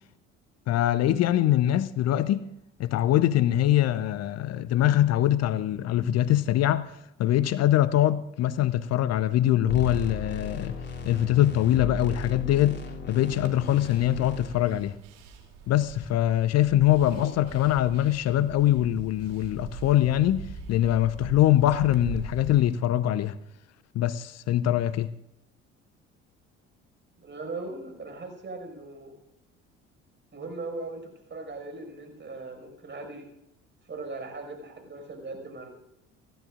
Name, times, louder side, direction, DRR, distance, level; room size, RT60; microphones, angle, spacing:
voice 1, 0.7-2.5 2.8-10.8 11.0-15.0 15.7-23.4 23.9-25.1, left 12 dB, 45° left, 0.7 m, -23 dB
sound 1, 9.7-14.5, left 1 dB, 30° left, 3.2 m, -36 dB
sound 2, 13.2-22.6, right 5 dB, 60° right, 3.0 m, -42 dB
voice 2, 17.0-17.3 27.2-29.1 30.3-33.3 33.8-35.7, right 3 dB, 30° right, 5.5 m, -39 dB
30.0 x 12.5 x 2.5 m
figure-of-eight pair, 55°, 38 cm